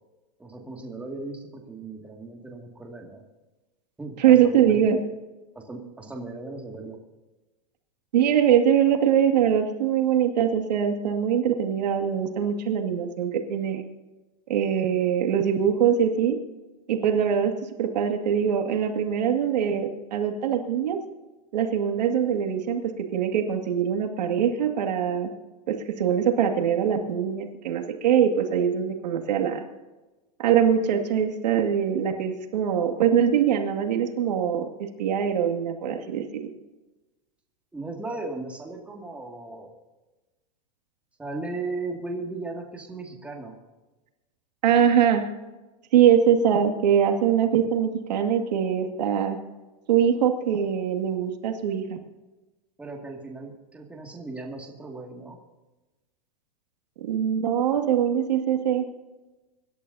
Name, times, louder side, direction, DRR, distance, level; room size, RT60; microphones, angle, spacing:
voice 1, 0.4-3.2 4.0-4.8 5.6-7.0 37.7-39.7 41.2-43.6 52.8-55.4, right 3 dB, 5° right, 0 dB, 2.2 m, -36 dB
voice 2, 4.2-5.0 8.1-13.8 14.5-16.4 16.9-17.5 17.8-21.0 21.5-25.3 25.7-29.6 30.4-34.7 35.0-36.2 44.6-45.2 45.9-49.4 49.9-52.0 57.0-58.9, right 8 dB, 85° right, 5 dB, 2.2 m, -22 dB
25.0 x 12.0 x 2.8 m, 1.1 s
supercardioid pair, 150°, 21 cm